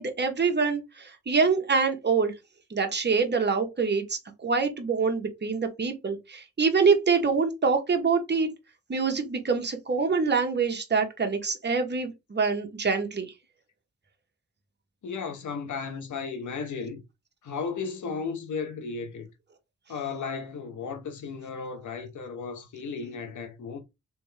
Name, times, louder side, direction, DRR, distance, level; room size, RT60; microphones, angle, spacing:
voice 1, 0.0-2.3 2.7-8.5 8.9-13.3, right 5 dB, 35° right, 1.1 m, -25 dB
voice 2, 15.0-17.0 17.4-19.3 19.9-23.8, left 5 dB, 85° left, 1.0 m, -35 dB
3.4 x 3.2 x 3.2 m
cardioid pair, 75°, 29 cm